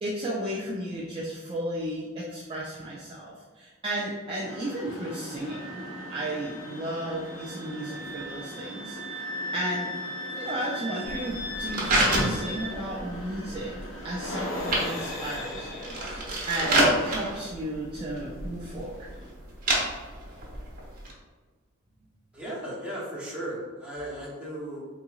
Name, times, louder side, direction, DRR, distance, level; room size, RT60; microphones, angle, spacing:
voice 1, 0.0-10.0 10.3-13.7 14.0-19.1, right 1 dB, 25° right, -5 dB, 0.3 m, -34 dB
sound 1, 4.4-19.3, left 1 dB, 60° left, 0.5 m, -41 dB
Wind instrument woodwind instrument, 5.5-12.7, equal, 40° left, 1.3 m, -38 dB
sound 2, 11.1-21.1, right 1 dB, 40° right, 0.8 m, -29 dB
voice 2, 22.3-24.8, right 1 dB, 5° right, -7 dB, 0.8 m, -36 dB
3.9 x 2.8 x 2.3 m, 1.4 s
head